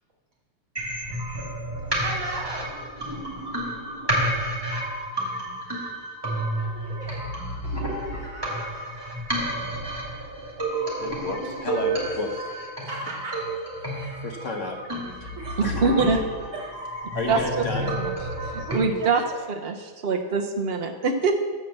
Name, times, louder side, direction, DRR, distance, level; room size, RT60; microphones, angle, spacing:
sound 1, 0.8-18.8, right 1 dB, 10° right, 1.9 m, -30 dB
voice 1, 2.0-2.9 6.5-7.3 7.6-9.2 12.9-13.4 13.8-14.2 15.4-15.6 16.5-17.2 18.6-19.1 19.4-19.5, right 3 dB, 40° right, -6 dB, 3.1 m, -38 dB
voice 2, 11.0-12.8 14.2-14.8 15.2-15.3 15.6-15.8 17.1-17.9, left 3 dB, 45° left, 2 dB, 1.2 m, -32 dB
voice 3, 15.6-16.2 17.3-17.4 18.0-18.1 18.4-19.2 19.5-21.3, right 4 dB, 80° right, 3 dB, 0.5 m, -24 dB
13.0 x 4.5 x 7.3 m, 1.5 s
omnidirectional pair, 2.2 m